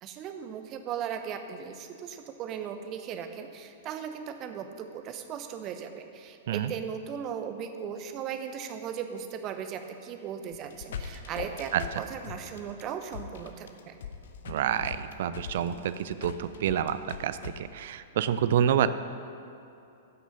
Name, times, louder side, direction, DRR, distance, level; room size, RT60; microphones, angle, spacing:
voice 1, 0.0-14.0, right 8 dB, 35° right, 7 dB, 0.9 m, -37 dB
sound 1, 10.5-17.5, left 7 dB, 60° left, 0.8 m, -40 dB
voice 2, 14.5-18.9, right 10 dB, 55° right, 13 dB, 0.5 m, -28 dB
15.5 x 6.1 x 5.4 m, 2.6 s
figure-of-eight pair, 105°, 0 cm